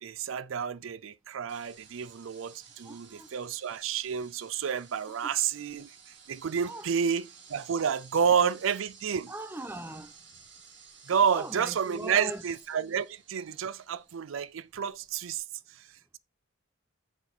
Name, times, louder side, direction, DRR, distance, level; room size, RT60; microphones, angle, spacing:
voice 1, 0.0-5.9 6.3-9.3 11.1-15.4 15.7-15.9, right 7 dB, 75° right, 0.4 m, -30 dB
sound 1, 1.5-15.4, right 6 dB, 60° right, 2.0 m, -55 dB
voice 2, 2.8-3.3 5.1-5.3 6.6-6.9 9.3-10.1 11.3-12.4, right 1 dB, 10° right, 0.8 m, -40 dB
7.2 x 7.1 x 4.3 m
head